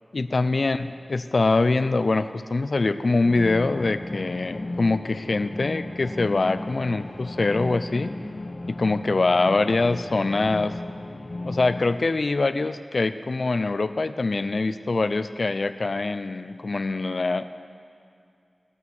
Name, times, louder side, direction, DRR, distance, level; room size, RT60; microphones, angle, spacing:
voice 1, 0.1-8.1 8.7-10.8 11.4-17.4, left 3 dB, 70° left, 11 dB, 0.5 m, -24 dB
sound 1, 3.2-11.8, left 2 dB, 50° left, 1.1 m, -35 dB
18.5 x 6.4 x 7.1 m, 2.4 s
wide cardioid pair, 45°, 0 cm